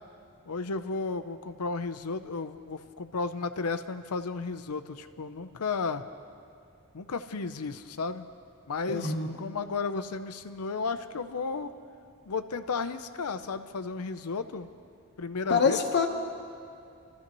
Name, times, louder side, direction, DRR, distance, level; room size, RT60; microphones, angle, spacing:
voice 1, 0.5-6.0 6.9-8.3 8.7-11.7 12.3-14.7 15.2-15.8, left 4 dB, 85° left, 10 dB, 0.7 m, -33 dB
voice 2, 8.9-9.4 15.5-16.1, left 5 dB, 50° left, 3 dB, 1.1 m, -25 dB
27.0 x 14.0 x 3.1 m, 2.5 s
head